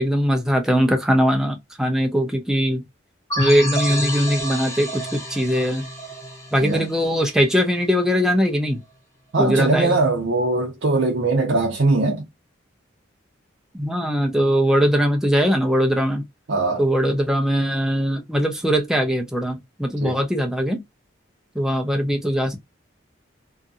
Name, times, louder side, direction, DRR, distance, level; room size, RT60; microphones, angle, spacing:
voice 1, 0.0-2.8 3.4-5.8 6.5-8.8 9.4-10.0 13.7-16.3 16.8-20.8 21.5-22.6, equal, 5° right, 0.5 m, -21 dB
sound 1, 3.3-7.8, equal, 15° left, 0.9 m, -29 dB
voice 2, 9.3-12.3 16.5-16.8 20.0-20.2, right 2 dB, 65° right, 0.6 m, -21 dB
2.7 x 2.5 x 2.4 m
head